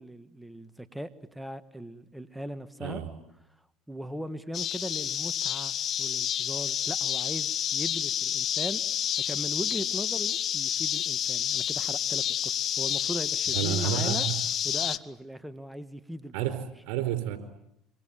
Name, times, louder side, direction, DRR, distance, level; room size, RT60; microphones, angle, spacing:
voice 1, 0.0-3.0 3.9-8.8 9.2-14.3 14.6-16.3, equal, 5° right, 11 dB, 1.6 m, -39 dB
voice 2, 2.8-3.1 13.5-14.3 16.3-17.4, right 10 dB, 80° right, 9 dB, 4.6 m, -30 dB
sound 1, 4.5-15.0, left 10 dB, 50° left, 1.1 m, -29 dB
26.0 x 25.5 x 9.0 m, 0.76 s
supercardioid pair, 90°, 0 cm